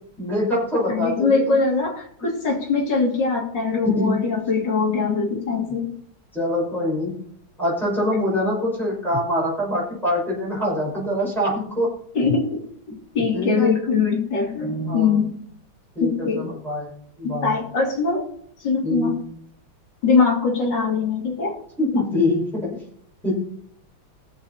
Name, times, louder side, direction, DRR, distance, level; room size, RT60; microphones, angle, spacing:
voice 1, 0.2-1.6 3.8-4.2 6.3-7.1 7.6-11.9 13.3-13.7 14.9-15.1 15.9-16.9 17.2-17.6 18.8-19.2 21.8-22.8 23.2-23.3, left 1 dB, ahead, -6 dB, 5.6 m, -24 dB
voice 2, 0.9-5.9 12.1-12.6 13.1-15.4 16.0-16.6 17.4-18.3 18.6-19.2 20.0-21.6, left 4 dB, 60° left, -1 dB, 3.3 m, -22 dB
20.0 x 7.3 x 4.2 m, 0.66 s
omnidirectional pair, 2.2 m